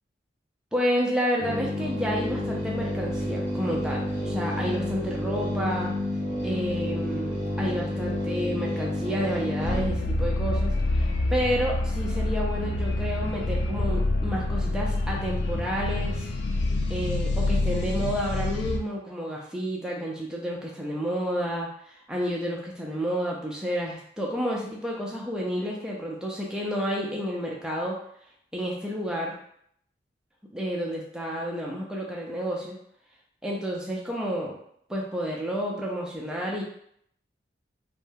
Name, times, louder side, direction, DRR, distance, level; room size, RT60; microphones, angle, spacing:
voice 1, 0.7-5.9 6.4-16.3 16.9-21.7 22.1-28.0 28.5-29.3 30.5-32.8 33.4-34.5 34.9-36.6, equal, 5° right, -3 dB, 0.4 m, -30 dB
sound 1, 1.4-9.8, left 1 dB, 85° left, 0.9 m, -30 dB
sound 2, 9.6-18.8, left 2 dB, 70° left, 0.4 m, -27 dB
2.6 x 2.1 x 3.5 m, 0.69 s
head